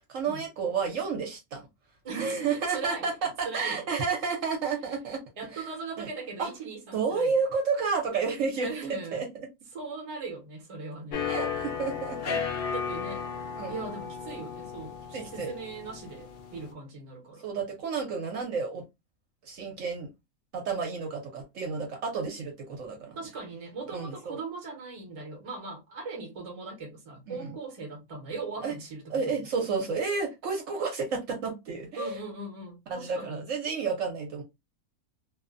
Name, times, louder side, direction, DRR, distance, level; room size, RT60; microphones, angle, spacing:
voice 1, 0.1-1.7 2.1-5.2 5.5-5.6 6.0-6.1 6.4-6.5 6.9-8.7 9.1-9.3 11.3-12.4 13.6-13.7 15.1-15.5 17.4-18.8 19.4-20.1 20.5-23.2 23.9-24.4 27.3-27.5 28.6-28.7 29.1-32.2 32.9-34.4, right 5 dB, 65° right, 1.0 m, -31 dB
voice 2, 2.0-3.1 3.4-3.8 5.4-7.3 8.6-9.2 9.7-11.3 12.7-13.3 13.7-17.5 23.1-29.3 32.0-33.4, right 3 dB, 30° right, 0.7 m, -39 dB
sound 1, 11.1-16.7, left 6 dB, 75° left, 0.5 m, -35 dB
2.6 x 2.1 x 2.4 m
omnidirectional pair, 1.5 m